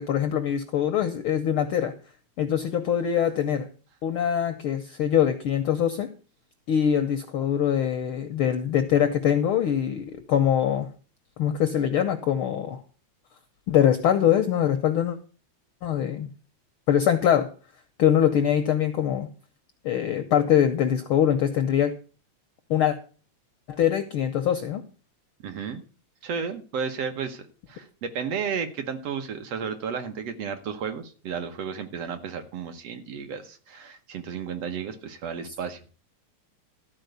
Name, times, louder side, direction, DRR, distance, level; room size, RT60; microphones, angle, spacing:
voice 1, 0.0-1.9 2.4-3.7 4.0-6.1 6.7-10.9 11.4-12.8 13.7-15.2 15.8-16.3 16.9-17.5 18.0-19.3 19.8-21.9 22.7-23.0 23.7-24.8, left 9 dB, 75° left, 7 dB, 1.2 m, -23 dB
voice 2, 25.4-25.8 26.2-35.8, right 6 dB, 65° right, 6 dB, 1.9 m, -33 dB
13.0 x 4.5 x 8.0 m, 0.38 s
omnidirectional pair, 3.3 m